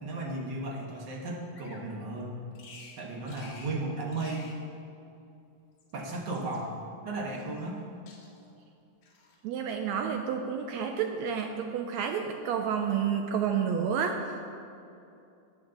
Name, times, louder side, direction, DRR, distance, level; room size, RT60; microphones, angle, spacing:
voice 1, 0.0-2.4 3.0-4.5 5.9-6.8 7.0-7.8, right 2 dB, 55° right, -1 dB, 1.3 m, -35 dB
Bird vocalization bird call bird song, 1.5-1.9 2.5-3.0 3.3-3.8 4.1-4.6 5.6-6.6 7.4-7.8 8.1-8.5 9.0-9.4, left 4 dB, 70° left, 3.2 m, -52 dB
voice 2, 9.4-14.3, right 7 dB, 80° right, 5 dB, 1.6 m, -30 dB
14.0 x 8.8 x 3.9 m, 2.6 s
omnidirectional pair, 3.6 m